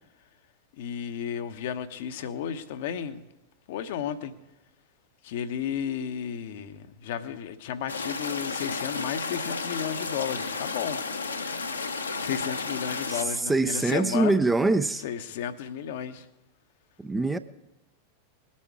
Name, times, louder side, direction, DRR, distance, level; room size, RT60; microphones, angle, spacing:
voice 1, 0.8-3.3 3.7-4.3 5.2-11.0 12.2-14.4 15.0-16.3, left 8 dB, 55° left, 0.9 m, -33 dB
sound 1, 7.9-13.2, left 4 dB, 75° left, 1.0 m, -32 dB
voice 2, 13.5-15.0 17.0-17.4, right 2 dB, 10° right, 0.5 m, -23 dB
20.0 x 8.6 x 4.8 m
figure-of-eight pair, 90°, 0 cm